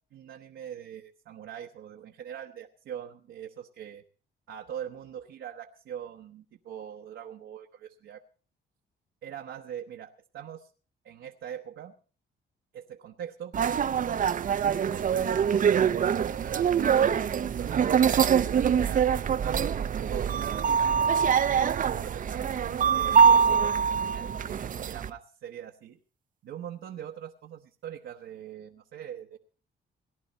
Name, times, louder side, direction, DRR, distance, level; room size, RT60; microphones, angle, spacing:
voice 1, 0.1-4.0 4.5-8.2 9.2-10.7 11.0-11.9 12.7-14.3 14.8-19.1 19.7-20.8 21.5-22.5 22.9-26.0 26.4-29.4, right 9 dB, 75° right, 2 dB, 1.0 m, -42 dB
sound 1, 13.5-25.1, right 7 dB, 40° right, 0.6 m, -24 dB
18.5 x 11.0 x 4.2 m, 0.39 s
cardioid pair, 90°, 20 cm